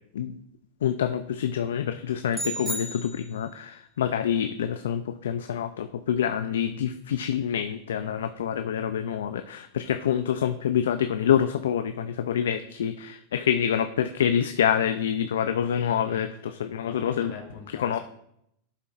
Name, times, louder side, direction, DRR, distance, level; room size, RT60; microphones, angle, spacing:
voice 1, 0.8-17.3 17.8-18.0, left 9 dB, 85° left, 9 dB, 0.4 m, -26 dB
sound 1, 2.3-3.7, right 1 dB, ahead, 1.6 m, -34 dB
voice 2, 16.9-18.0, left 5 dB, 70° left, 3 dB, 2.2 m, -42 dB
12.0 x 7.2 x 2.5 m, 0.77 s
hypercardioid pair, 110°, 0 cm